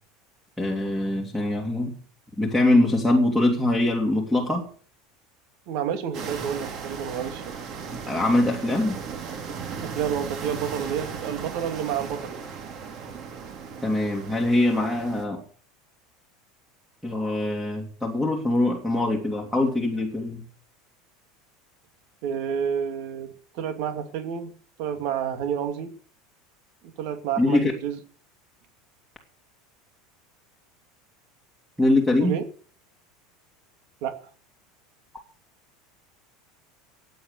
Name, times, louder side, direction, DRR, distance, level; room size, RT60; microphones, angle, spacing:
voice 1, 0.6-2.0 2.4-4.6 8.1-9.0 13.8-15.4 17.0-20.4 27.4-27.7 31.8-32.4, left 1 dB, ahead, 2 dB, 2.7 m, -23 dB
voice 2, 5.7-7.6 9.8-12.4 22.2-24.5 24.8-25.9 27.0-28.0 32.2-32.4 34.0-34.2, right 8 dB, 60° right, 8 dB, 2.6 m, -29 dB
sound 1, 6.1-15.2, right 6 dB, 40° right, 3.3 m, -36 dB
15.5 x 9.3 x 6.9 m, 0.43 s
supercardioid pair, 150°, 0 cm